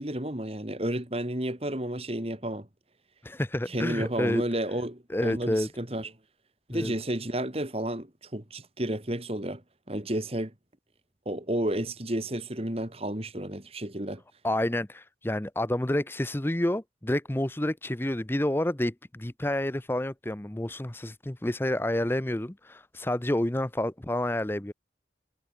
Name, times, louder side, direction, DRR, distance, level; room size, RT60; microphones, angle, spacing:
voice 1, 0.0-2.7 3.7-6.1 6.7-9.6 9.9-10.5 11.3-14.2, right 1 dB, 35° right, 2.5 m, -31 dB
voice 2, 3.2-4.4 5.1-5.7 6.7-6.9 14.4-24.7, left 1 dB, 10° left, 0.7 m, -29 dB
head